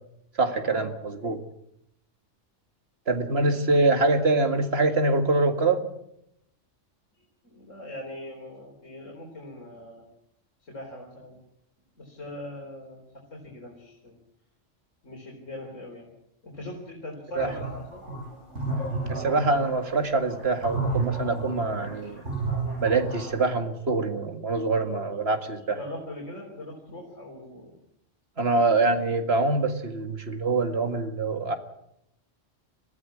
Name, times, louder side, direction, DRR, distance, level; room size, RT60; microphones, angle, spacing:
voice 1, 0.4-1.4 3.1-5.8 17.4-17.5 19.1-22.2 22.8-25.8 28.4-31.6, right 3 dB, 55° right, 7 dB, 2.2 m, -24 dB
voice 2, 7.4-10.1 10.7-11.4 12.0-13.0 13.3-14.2 15.0-16.1 16.4-18.0 25.7-27.7, left 1 dB, 80° left, -1 dB, 4.4 m, -41 dB
sound 1, 17.4-23.4, right 3 dB, 70° right, 8.3 m, -31 dB
23.0 x 14.5 x 8.5 m, 0.78 s
omnidirectional pair, 1.3 m